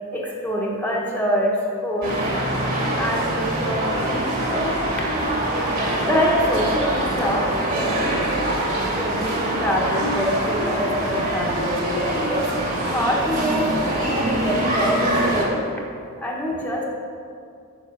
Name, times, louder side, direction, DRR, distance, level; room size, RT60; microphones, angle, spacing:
voice 1, 0.1-2.2 3.0-4.7 5.1-5.2 6.0-8.2 8.8-13.8 14.1-15.6 16.2-16.8, equal, 5° left, -3 dB, 1.0 m, -25 dB
sound 1, 2.0-15.4, right 1 dB, 40° right, 2.5 m, -24 dB
7.6 x 6.2 x 7.2 m, 2.3 s
head